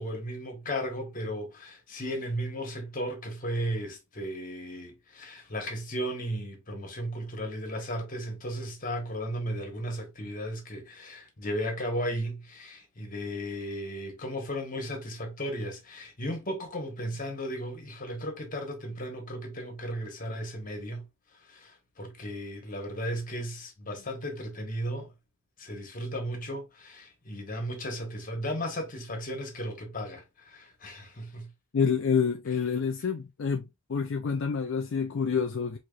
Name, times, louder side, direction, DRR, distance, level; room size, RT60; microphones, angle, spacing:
voice 1, 0.0-21.0 21.5-25.1 25.6-31.5, equal, 40° left, 1.2 m, -35 dB
voice 2, 31.7-33.6 33.9-35.8, left 6 dB, 55° left, 0.4 m, -27 dB
4.8 x 2.9 x 2.4 m
head